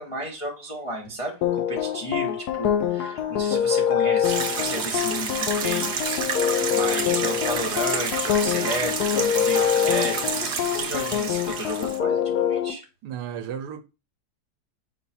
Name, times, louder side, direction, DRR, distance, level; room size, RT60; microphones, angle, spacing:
voice 1, 0.0-6.2 6.7-12.8, equal, 30° left, 0.6 m, -33 dB
sound 1, 1.4-12.7, left 9 dB, 70° left, 1.1 m, -25 dB
sound 2, 4.2-12.0, right 6 dB, 55° right, 0.8 m, -29 dB
voice 2, 13.0-13.8, right 8 dB, 80° right, 1.2 m, -33 dB
5.4 x 2.3 x 4.1 m
omnidirectional pair, 1.8 m